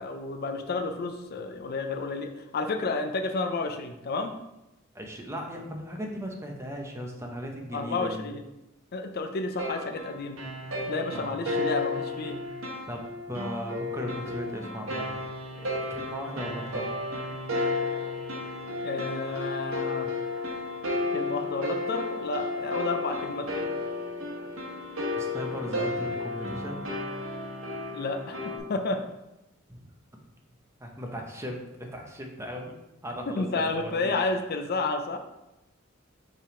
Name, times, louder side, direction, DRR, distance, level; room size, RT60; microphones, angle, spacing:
voice 1, 0.0-4.3 7.7-8.4 8.9-10.4 10.9-12.4 18.8-20.1 21.1-23.6 27.9-29.0 33.3-35.2, left 3 dB, 50° left, 6 dB, 0.5 m, -31 dB
voice 2, 4.9-8.2 11.1-11.3 12.9-15.2 15.5-17.0 25.2-26.8 29.7-29.8 30.8-32.7 33.0-33.5 33.8-34.2, equal, 15° right, 1 dB, 0.7 m, -37 dB
sound 1, 9.6-28.6, left 2 dB, 75° right, 1.2 m, -33 dB
5.4 x 3.5 x 4.9 m, 0.95 s
head